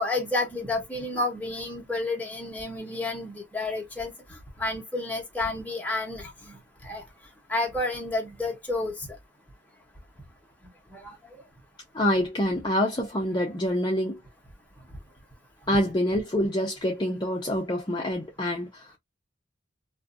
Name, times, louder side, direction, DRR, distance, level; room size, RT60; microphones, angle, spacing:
voice 1, 0.0-6.5 6.8-7.0 7.5-9.0 10.9-11.1, left 2 dB, 10° left, 1.0 m, -30 dB
voice 2, 11.9-14.2 15.7-18.8, equal, 25° left, 0.5 m, -26 dB
2.6 x 2.4 x 2.4 m
head